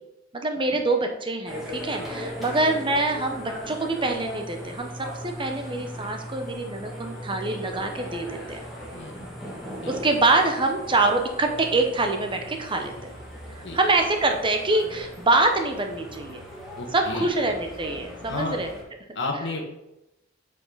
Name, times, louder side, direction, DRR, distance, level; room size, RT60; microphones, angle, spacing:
voice 1, 0.3-8.6 9.9-13.1 13.6-16.4 16.9-18.7, right 2 dB, 25° right, 5 dB, 0.8 m, -25 dB
sound 1, 1.5-18.8, equal, ahead, 2.1 m, -38 dB
voice 2, 16.8-17.3 18.3-18.6 19.1-19.6, left 2 dB, 65° left, 2 dB, 1.4 m, -31 dB
8.2 x 5.2 x 3.9 m, 0.92 s
head